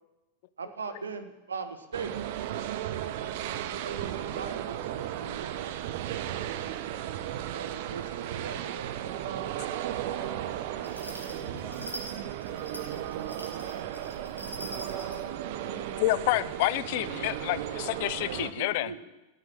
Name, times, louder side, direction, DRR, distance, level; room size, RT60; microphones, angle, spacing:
voice 1, 0.6-2.1 3.7-6.4 7.5-9.6 18.2-19.0, right 5 dB, 70° right, 10 dB, 1.2 m, -41 dB
sound 1, 1.9-18.5, right 11 dB, 50° right, 0.8 m, -35 dB
voice 2, 8.8-9.5 10.0-13.0 14.1-16.0, left 1 dB, 10° left, -6 dB, 3.4 m, -52 dB
sound 2, 10.8-15.2, equal, 85° left, 2.1 m, -43 dB
voice 3, 16.0-18.9, left 16 dB, 50° left, 16 dB, 0.5 m, -28 dB
13.5 x 8.3 x 7.6 m, 1.0 s
figure-of-eight pair, 90°, 0 cm